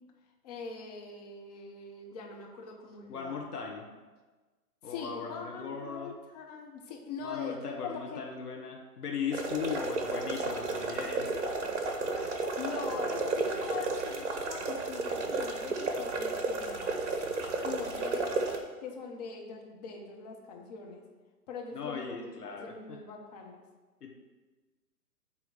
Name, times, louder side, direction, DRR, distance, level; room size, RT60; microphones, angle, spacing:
voice 1, 0.4-3.5 4.8-8.2 12.6-16.8 17.6-18.4 18.8-21.0 21.5-23.6, left 5 dB, 25° left, 0 dB, 0.9 m, -42 dB
voice 2, 3.1-3.9 4.8-6.1 7.2-11.3 21.7-23.0 24.0-24.1, left 6 dB, 70° left, 0 dB, 1.4 m, -38 dB
sound 1, 9.3-18.6, right 3 dB, 45° right, 1.1 m, -33 dB
8.9 x 3.1 x 6.4 m, 1.3 s
figure-of-eight pair, 130°, 48 cm